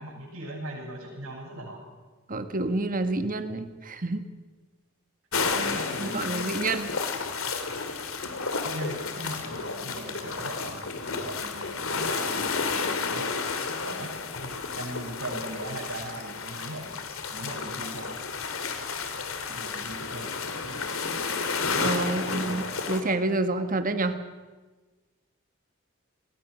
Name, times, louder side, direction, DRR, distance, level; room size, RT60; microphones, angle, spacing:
voice 1, 0.0-1.8 5.4-6.4 8.6-10.8 11.2-13.3 13.8-14.1 14.7-17.0 17.3-18.2 19.5-20.3 22.3-22.7, right 1 dB, 90° right, -6 dB, 7.3 m, -39 dB
voice 2, 2.3-4.2 5.6-6.9 21.8-24.2, right 2 dB, 40° right, 9 dB, 1.7 m, -29 dB
sound 1, 5.3-23.0, left 4 dB, 75° left, 2.7 m, -31 dB
29.5 x 21.0 x 6.5 m, 1.3 s
head